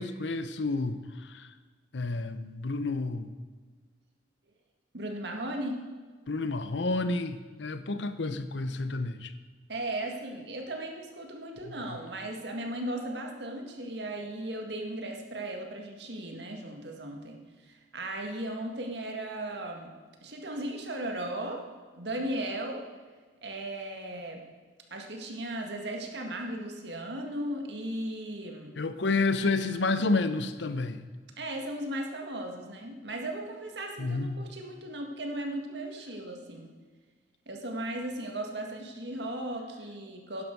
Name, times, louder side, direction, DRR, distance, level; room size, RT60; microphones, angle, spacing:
voice 1, 0.0-1.5 1.9-3.3 6.3-9.3 28.8-31.0 34.0-34.3, left 3 dB, 75° left, 11 dB, 0.8 m, -30 dB
voice 2, 4.9-5.8 9.7-20.0 20.2-21.7 21.9-22.8 23.4-24.4 24.9-28.8 31.4-36.7 37.5-40.4, right 1 dB, 65° right, 2 dB, 1.8 m, -36 dB
11.5 x 10.5 x 4.6 m, 1.5 s
head